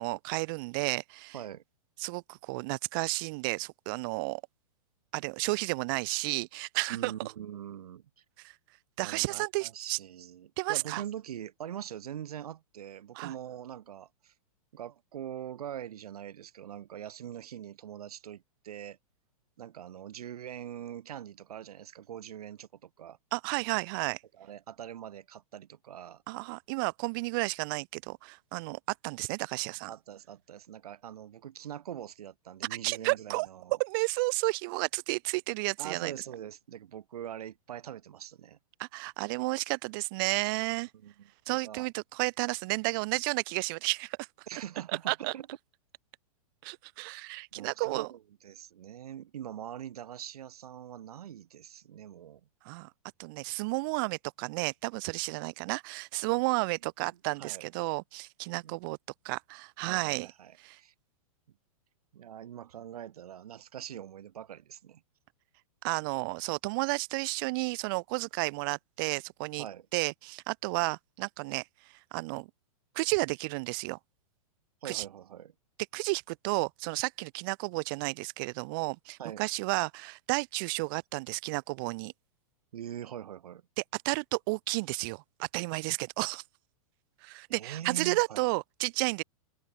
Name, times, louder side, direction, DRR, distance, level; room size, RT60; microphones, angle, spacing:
voice 1, 0.0-1.3 2.0-4.4 5.1-7.1 8.4-8.5 9.0-10.0 10.6-11.0 13.1-13.3 23.3-24.2 26.3-29.9 32.8-33.5 33.8-36.1 38.8-40.9 41.5-44.3 45.1-45.3 46.6-48.1 52.6-52.9 53.2-59.0 59.2-60.3 60.6-60.8 65.8-69.7 69.9-71.6 72.1-72.5 72.9-74.0 74.8-75.0 75.9-82.1 84.0-86.4 87.2-89.2, right 27 dB, 35° right, 0.5 m, -32 dB
voice 2, 6.9-8.0 9.0-14.3 14.7-19.0 19.6-23.2 24.4-26.2 29.9-33.8 35.8-38.6 41.0-41.9 44.5-45.5 47.5-52.4 57.4-57.7 58.6-58.7 59.8-60.9 62.1-65.0 69.6-69.9 74.8-75.5 79.2-79.4 82.7-83.6 87.5-88.5, right 10 dB, 75° right, 2.7 m, -43 dB
open air
hypercardioid pair, 145°, 19 cm